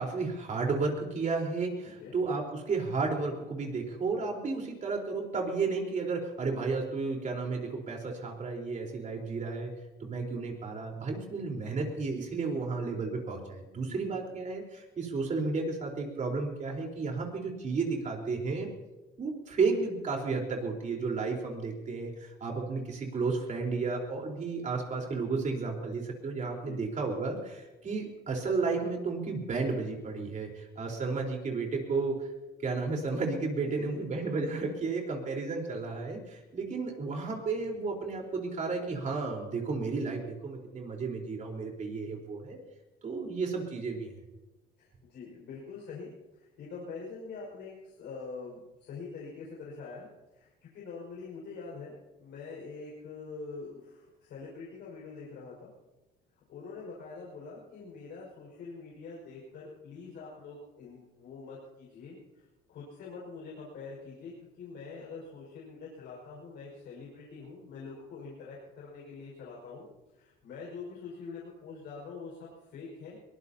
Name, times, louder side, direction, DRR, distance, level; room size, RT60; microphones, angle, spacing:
voice 1, 0.0-9.7 10.0-18.7 19.2-32.2 32.6-42.6 43.0-44.1, right 4 dB, 40° right, 1 dB, 4.2 m, -32 dB
voice 2, 1.8-2.2 13.9-14.3 26.6-26.8 33.6-34.0 41.8-42.2 44.8-51.9 52.2-55.7 56.5-73.2, left 4 dB, 70° left, -4 dB, 5.6 m, -45 dB
23.0 x 19.5 x 2.9 m, 1.1 s
cardioid pair, 110°, 19 cm